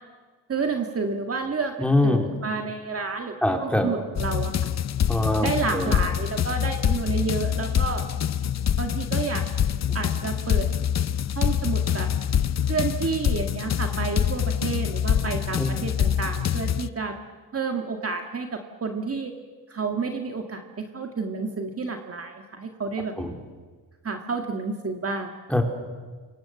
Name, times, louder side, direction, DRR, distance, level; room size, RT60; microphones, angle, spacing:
voice 1, 0.5-4.5 5.4-8.0 8.8-9.4 9.9-10.7 11.4-12.1 12.7-17.1 17.5-19.3 19.7-23.1 24.0-25.3, right 4 dB, 35° right, 4 dB, 2.0 m, -30 dB
voice 2, 1.8-2.3 3.4-3.9 5.1-5.5 5.7-6.0 15.6-15.8 23.2-23.3 25.5-25.6, left 2 dB, 5° left, 3 dB, 3.8 m, -23 dB
sound 1, 4.2-16.9, left 9 dB, 40° left, 0.8 m, -25 dB
29.5 x 25.0 x 7.9 m, 1.5 s
cardioid pair, 130°, 42 cm